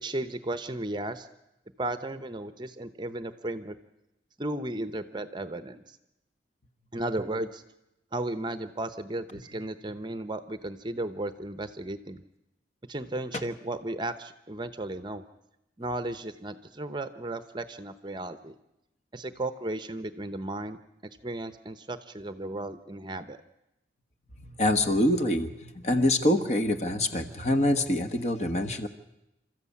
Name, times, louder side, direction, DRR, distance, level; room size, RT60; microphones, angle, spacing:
voice 1, 0.0-1.3 1.8-3.8 4.4-6.0 6.9-7.6 8.1-12.2 12.9-15.2 15.8-18.6 19.1-20.8 21.2-23.4, right 1 dB, 25° right, 10 dB, 0.8 m, -34 dB
voice 2, 24.4-28.9, left 1 dB, 35° left, 8 dB, 1.3 m, -25 dB
28.0 x 13.5 x 8.4 m, 0.91 s
head